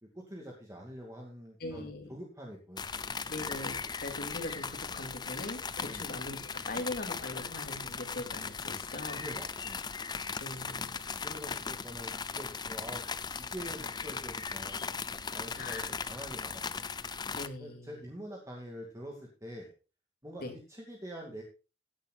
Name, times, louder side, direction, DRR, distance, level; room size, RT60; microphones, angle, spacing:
voice 1, 0.0-3.4 5.8-6.1 9.2-10.0 11.2-13.0 13.4-14.9 15.3-16.9 17.6-19.7 20.2-21.4, equal, 15° right, -1 dB, 2.3 m, -45 dB
voice 2, 1.6-2.2 3.3-9.2 10.4-11.0 15.6-15.8 17.3-18.0 20.4-20.5, left 2 dB, 50° left, 4 dB, 2.6 m, -41 dB
sound 1, 2.8-17.5, left 5 dB, 20° left, 0.5 m, -38 dB
16.0 x 10.0 x 2.4 m, 0.32 s
head